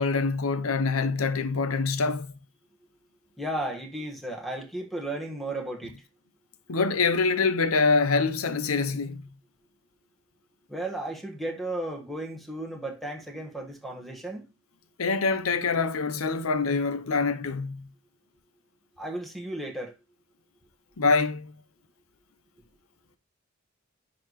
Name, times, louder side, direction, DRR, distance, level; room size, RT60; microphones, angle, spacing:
voice 1, 0.0-2.3 6.7-9.2 15.0-17.9 21.0-21.5, left 4 dB, 85° left, 0.8 m, -25 dB
voice 2, 3.4-6.0 10.7-14.5 19.0-20.0, right 1 dB, ahead, 1.4 m, -34 dB
9.9 x 4.2 x 3.0 m
head